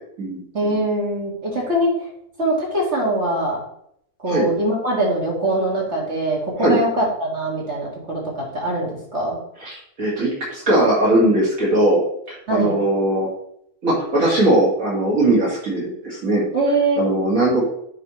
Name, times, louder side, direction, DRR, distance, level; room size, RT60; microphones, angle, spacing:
voice 1, 0.5-1.9 2.4-3.6 4.2-9.4 12.5-12.7 16.5-17.0, right 1 dB, 45° right, -3 dB, 2.6 m, -22 dB
voice 2, 9.6-12.0 12.3-13.3 13.8-16.4 17.0-17.7, right 1 dB, 65° right, -6 dB, 2.8 m, -19 dB
10.0 x 4.9 x 3.2 m, 0.72 s
omnidirectional pair, 1.6 m